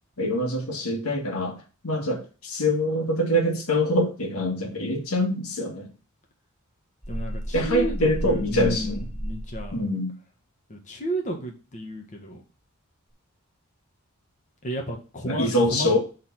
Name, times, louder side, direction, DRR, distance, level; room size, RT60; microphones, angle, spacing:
voice 1, 0.2-5.9 7.5-9.0 9.7-10.1 15.2-16.0, left 1 dB, 90° left, 1.6 m, -24 dB
sound 1, 7.0-9.8, equal, ahead, 0.4 m, -33 dB
voice 2, 7.1-9.9 10.7-12.4 14.6-16.0, equal, 35° left, 1.3 m, -32 dB
6.5 x 3.3 x 5.9 m
head